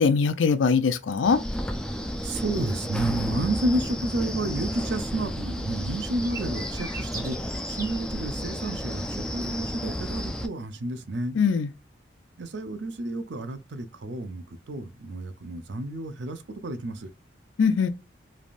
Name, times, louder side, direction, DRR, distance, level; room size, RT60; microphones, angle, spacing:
voice 1, 0.0-1.4 11.4-11.7 17.6-17.9, left 5 dB, 85° left, 0.5 m, -21 dB
Wind, 1.2-10.5, equal, 5° left, 0.3 m, -32 dB
voice 2, 2.2-11.4 12.4-17.1, right 2 dB, 70° right, 0.5 m, -31 dB
sound 1, 6.2-8.0, right 3 dB, 20° right, 0.8 m, -39 dB
3.3 x 2.5 x 2.4 m
head